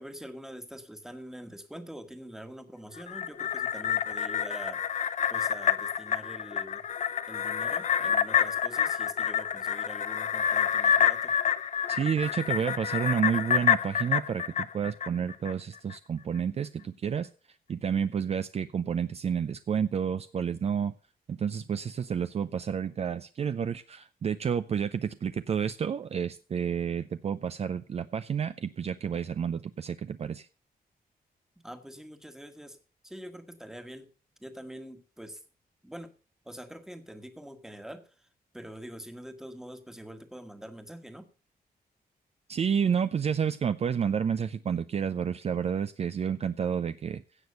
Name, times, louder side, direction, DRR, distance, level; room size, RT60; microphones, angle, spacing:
voice 1, 0.0-6.8 7.3-11.3 31.6-32.8 33.0-34.1 34.4-35.4 35.8-36.1 36.4-38.3 38.5-41.3, equal, 5° right, 8 dB, 1.4 m, -45 dB
sound 1, 3.0-15.5 15.9-16.0, left 8 dB, 50° left, 0.6 m, -28 dB
voice 2, 11.9-17.3 17.7-20.9 21.3-30.5 42.5-47.2, right 7 dB, 40° right, 12 dB, 0.5 m, -30 dB
16.5 x 6.3 x 6.6 m, 0.38 s
wide cardioid pair, 155°, 16 cm